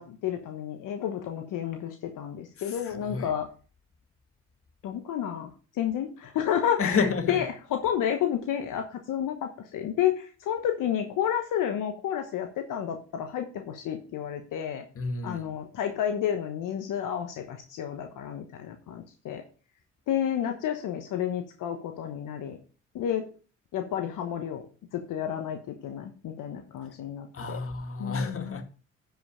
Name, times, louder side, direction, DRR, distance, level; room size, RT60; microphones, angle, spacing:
voice 1, 0.0-3.5 4.8-14.8 15.2-19.4 20.1-22.6 22.9-23.3 23.7-24.6 24.9-27.6 28.0-28.6, left 9 dB, 70° left, 1.2 m, -31 dB
voice 2, 2.6-3.3 6.8-7.4 15.0-15.5 27.3-28.6, left 4 dB, 40° left, 1.9 m, -30 dB
10.5 x 5.8 x 5.0 m
supercardioid pair, 60°, 33 cm